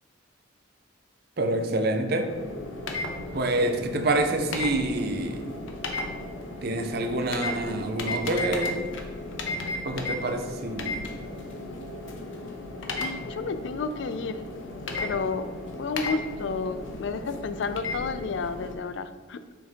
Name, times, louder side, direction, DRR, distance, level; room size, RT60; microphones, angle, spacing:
voice 1, 1.4-2.3 3.3-5.5 6.6-8.8 9.8-11.1, right 2 dB, 55° right, 6 dB, 0.6 m, -27 dB
sound 1, 2.3-18.7, left 2 dB, 90° left, 0.7 m, -35 dB
voice 2, 13.0-14.4 15.0-19.5, left 4 dB, 70° left, 11 dB, 0.4 m, -31 dB
5.9 x 3.6 x 4.4 m, 1.4 s
head